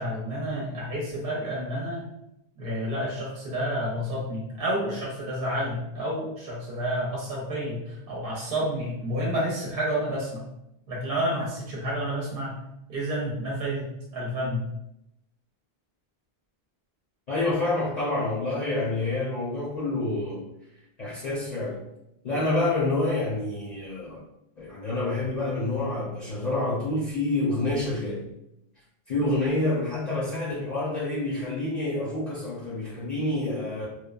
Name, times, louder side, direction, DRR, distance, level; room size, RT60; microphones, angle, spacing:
voice 1, 0.0-2.1 2.6-10.4 10.9-12.6 12.9-14.7, equal, 65° right, -4 dB, 0.8 m, -30 dB
voice 2, 17.3-20.4 21.0-21.8 22.2-24.2 24.6-28.2 29.1-33.9, left 2 dB, 45° left, -7 dB, 0.7 m, -28 dB
3.1 x 2.0 x 2.4 m, 0.83 s
omnidirectional pair, 1.0 m